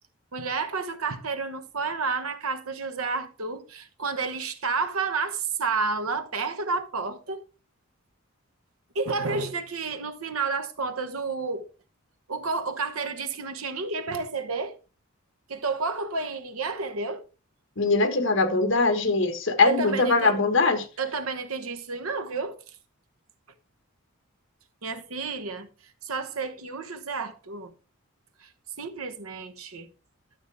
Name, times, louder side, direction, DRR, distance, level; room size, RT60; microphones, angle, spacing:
voice 1, 0.3-7.4 8.9-11.7 12.3-14.8 15.5-17.3 19.6-20.3 21.0-22.7 24.8-25.7 26.0-27.7 28.4-28.5 28.8-29.9, right 4 dB, 90° right, 1.1 m, -30 dB
voice 2, 17.8-20.8, left 3 dB, 60° left, 1.4 m, -22 dB
12.0 x 7.0 x 3.4 m
head